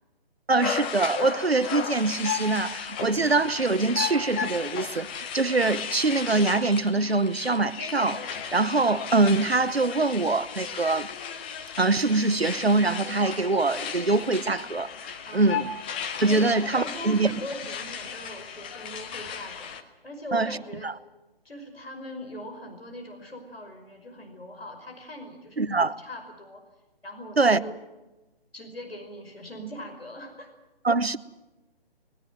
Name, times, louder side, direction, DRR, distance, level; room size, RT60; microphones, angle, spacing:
voice 1, 0.5-11.1 11.8-14.9 15.3-15.7 16.2-17.3 20.3-20.6 20.8-20.9 25.6-26.0 27.4-27.6 30.8-31.2, right 3 dB, 85° right, 1.1 m, -24 dB
sound 1, 0.6-19.8, left 7 dB, 10° left, 0.7 m, -35 dB
voice 2, 15.2-15.6 16.3-20.9 21.4-26.6 27.0-27.8 28.5-30.5, left 1 dB, 75° left, 5.4 m, -41 dB
21.5 x 21.0 x 7.7 m
figure-of-eight pair, 145°, 30 cm